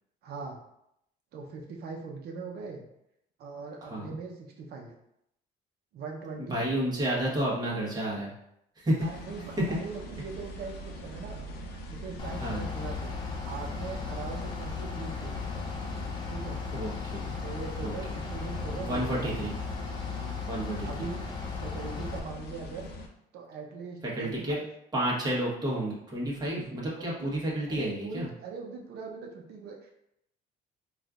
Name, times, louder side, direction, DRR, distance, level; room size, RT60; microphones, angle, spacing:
voice 1, 0.2-0.6 1.3-2.8 3.4-4.9 5.9-6.6 9.0-13.1 13.5-15.7 16.3-16.6 17.4-19.6 20.1-20.4 20.8-21.3 21.6-22.9 23.3-24.7 27.0-27.2 27.7-29.9, right 4 dB, 70° right, 1 dB, 0.7 m, -41 dB
voice 2, 3.8-4.2 6.4-8.3 8.8-9.0 9.6-9.7 12.4-12.6 16.7-17.4 17.8-18.2 18.8-19.5 20.5-21.1 24.0-24.6 24.9-28.3, right 1 dB, 25° right, -5 dB, 1.2 m, -31 dB
sound 1, 9.0-23.1, equal, 75° left, 0.6 m, -42 dB
Bus / Idling, 12.2-22.2, left 5 dB, 25° left, 0.7 m, -36 dB
4.2 x 2.5 x 2.4 m, 0.78 s
cardioid pair, 110°, 17 cm